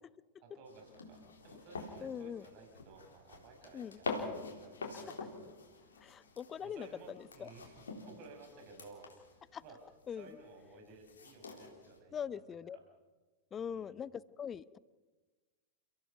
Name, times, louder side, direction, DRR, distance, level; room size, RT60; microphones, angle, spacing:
voice 1, 0.4-5.5 6.6-9.8 10.1-12.8 13.6-13.9, right 3 dB, 45° right, 3 dB, 5.9 m, -56 dB
sound 1, 0.7-12.0, left 3 dB, 70° left, 3.9 m, -46 dB
voice 2, 2.0-2.5 3.7-4.0 6.0-6.9 7.4-7.5 9.5-9.6 10.1-10.3 12.1-12.8 13.5-14.8, left 8 dB, 25° left, 21 dB, 0.6 m, -42 dB
30.0 x 16.5 x 5.9 m, 1.3 s
figure-of-eight pair, 90°, 0 cm